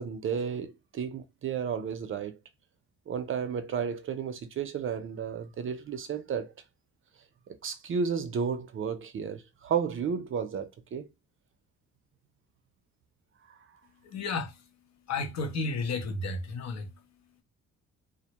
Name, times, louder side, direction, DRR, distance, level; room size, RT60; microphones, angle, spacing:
voice 1, 0.0-2.4 3.1-6.5 7.5-11.1, right 6 dB, 45° right, 0.5 m, -32 dB
voice 2, 14.0-14.6 15.1-16.9, left 3 dB, 60° left, 0.8 m, -32 dB
2.1 x 2.1 x 2.8 m
cardioid pair, 90°, 30 cm